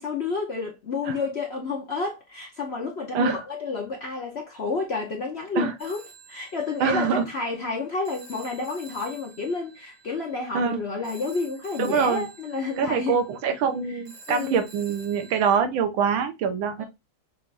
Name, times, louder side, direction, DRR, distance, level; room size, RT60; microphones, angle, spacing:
voice 1, 0.0-6.0 6.3-13.2 14.3-14.6 16.8-16.9, left 4 dB, 60° left, 0.6 m, -30 dB
Telephone, 5.8-15.6, right 3 dB, 50° right, 1.4 m, -50 dB
voice 2, 6.8-7.3 10.5-10.8 11.8-12.3 12.8-16.8, right 6 dB, 80° right, 1.6 m, -24 dB
5.9 x 2.5 x 3.2 m
omnidirectional pair, 2.2 m